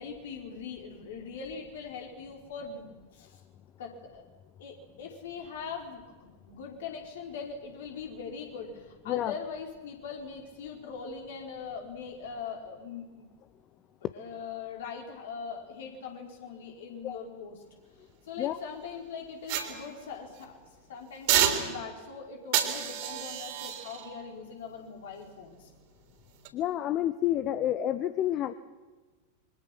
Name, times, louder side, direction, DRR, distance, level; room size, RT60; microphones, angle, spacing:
voice 1, 0.0-3.4 3.8-4.2 4.6-6.0 6.5-13.2 14.1-17.6 18.3-20.6 20.9-25.7, left 6 dB, 60° left, 2 dB, 4.9 m, -41 dB
sound 1, 19.5-20.5 21.3-22.1 22.5-25.7 26.3-26.5, right 10 dB, 45° right, 3.6 m, -31 dB
voice 2, 26.5-28.5, left 12 dB, 35° left, 15 dB, 0.8 m, -29 dB
27.5 x 24.0 x 6.2 m, 1.3 s
figure-of-eight pair, 90°, 0 cm